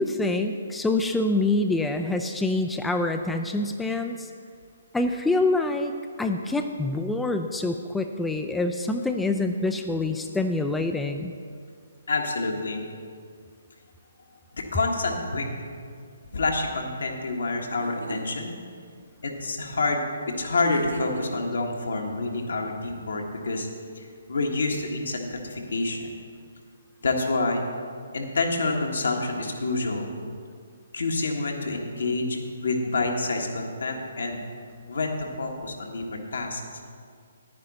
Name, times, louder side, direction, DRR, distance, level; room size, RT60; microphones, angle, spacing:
voice 1, 0.0-4.3 4.9-5.9 6.2-11.3, left 2 dB, 5° left, 5 dB, 0.4 m, -26 dB
voice 2, 12.1-12.8 14.5-15.5 16.3-18.5 19.2-20.0 20.4-23.7 23.9-26.1 27.0-27.6 28.1-30.1 30.9-34.4 34.9-36.8, left 3 dB, 70° left, 1 dB, 1.5 m, -28 dB
sound 1, 17.7-18.4 20.7-21.6, equal, 85° right, 1.7 m, -38 dB
10.5 x 9.6 x 4.1 m, 2.2 s
figure-of-eight pair, 135°, 0 cm